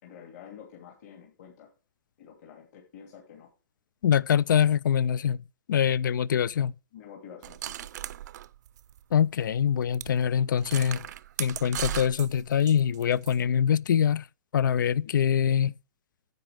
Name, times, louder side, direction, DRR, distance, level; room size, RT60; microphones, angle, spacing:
voice 1, 0.0-1.7 2.2-3.5 6.9-7.9 15.0-15.1, left 8 dB, 55° left, 2.6 m, -48 dB
voice 2, 4.0-5.4 5.7-6.7 9.1-11.0 11.4-14.3 14.5-15.7, left 8 dB, 75° left, 0.4 m, -24 dB
sound 1, 7.4-9.2 9.5-9.6 9.9-10.1 10.6-13.4, right 12 dB, 60° right, 0.5 m, -37 dB
10.0 x 7.8 x 3.5 m
hypercardioid pair, 135°, 10 cm